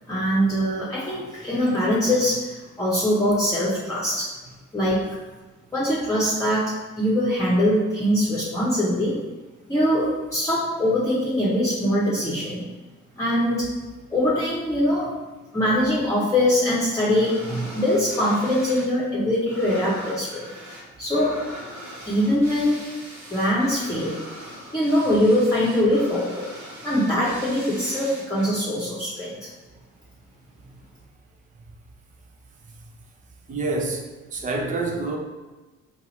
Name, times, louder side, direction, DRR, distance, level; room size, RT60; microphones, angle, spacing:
voice 1, 0.1-4.3 4.7-5.1 5.7-9.2 9.7-12.7 13.2-13.7 14.1-15.1 15.5-20.5 21.0-21.4 22.0-22.8 23.3-24.2 24.7-26.4 26.8-29.5, left 1 dB, 10° left, -7 dB, 1.0 m, -22 dB
sound 1, 17.0-18.9 19.2-28.5, equal, 50° right, 1.2 m, -41 dB
voice 2, 33.5-35.2, right 3 dB, 20° right, 1 dB, 0.6 m, -27 dB
2.7 x 2.4 x 4.1 m, 1.2 s
figure-of-eight pair, 45°, 38 cm